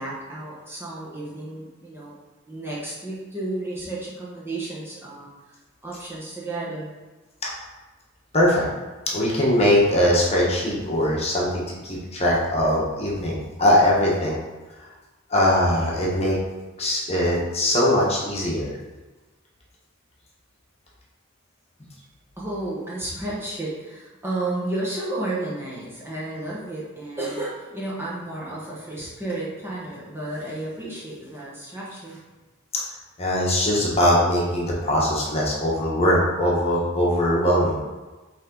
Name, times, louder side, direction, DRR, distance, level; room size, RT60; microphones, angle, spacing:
voice 1, 0.0-2.1 2.5-5.3 5.8-6.9 22.4-32.2, right 2 dB, 10° right, -6 dB, 1.1 m, -32 dB
voice 2, 8.3-8.7 9.1-14.4 15.3-16.4 16.8-18.7 33.2-37.8, left 1 dB, 30° left, -4 dB, 1.2 m, -21 dB
7.4 x 3.5 x 3.9 m, 1.2 s
head